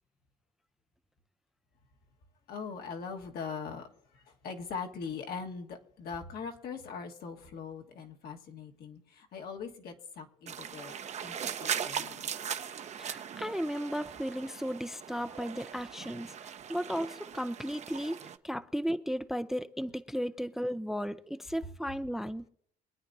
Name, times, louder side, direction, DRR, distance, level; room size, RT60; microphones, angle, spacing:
voice 1, 2.5-12.3, left 5 dB, 65° left, 1.6 m, -41 dB
sound 1, 10.5-18.4, right 8 dB, 40° right, 0.7 m, -39 dB
voice 2, 13.0-18.2 18.4-22.5, equal, ahead, 0.4 m, -35 dB
24.0 x 9.3 x 2.7 m
cardioid pair, 110°, 17 cm